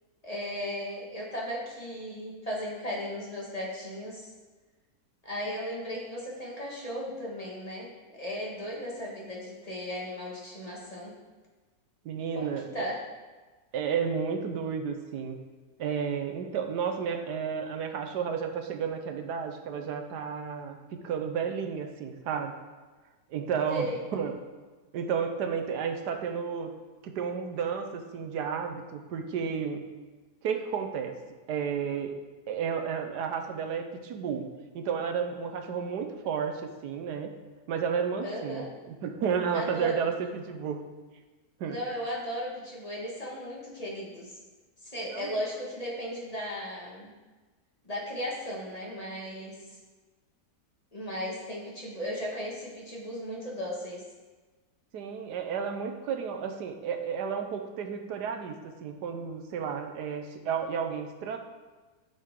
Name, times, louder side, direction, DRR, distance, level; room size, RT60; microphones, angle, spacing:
voice 1, 0.2-4.3 5.2-11.2 12.3-13.0 23.7-24.0 35.7-35.8 38.2-38.7 39.5-39.9 40.5-40.6 41.6-44.3 44.8-47.1 47.8-49.8 50.9-54.0, equal, 25° left, -4 dB, 1.8 m, -36 dB
voice 2, 12.0-12.9 13.7-15.4 15.8-22.6 23.3-24.3 24.9-26.7 27.0-29.8 30.4-31.2 31.5-32.1 32.5-34.5 34.7-37.3 37.7-40.8 41.6-41.8 45.0-45.3 54.9-61.4, right 6 dB, 85° right, 5 dB, 1.4 m, -32 dB
12.0 x 6.5 x 3.7 m, 1.3 s
omnidirectional pair, 1.7 m